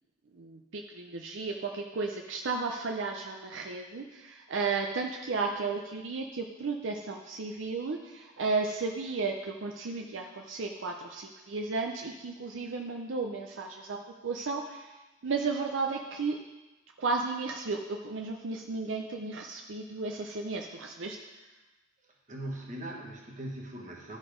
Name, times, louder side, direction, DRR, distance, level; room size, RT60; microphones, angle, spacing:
voice 1, 0.3-14.9 15.2-16.4 17.0-21.2, right 4 dB, 75° right, 2 dB, 0.6 m, -34 dB
voice 2, 22.0-24.2, right 1 dB, 40° right, -1 dB, 1.4 m, -40 dB
12.0 x 4.1 x 5.0 m, 1.1 s
head